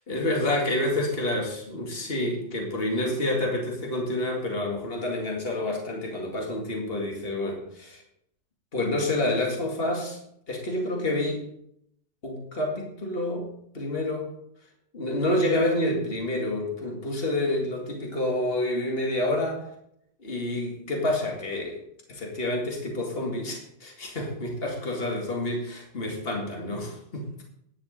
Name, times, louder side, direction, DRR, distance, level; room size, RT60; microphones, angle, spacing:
voice 1, 0.0-8.0 8.7-10.2 10.5-11.5 12.2-13.5 13.7-14.3 14.9-19.6 20.2-21.8 22.1-27.4, left 1 dB, 55° left, 0 dB, 2.5 m, -28 dB
10.5 x 6.8 x 8.3 m, 0.74 s
omnidirectional pair, 1.1 m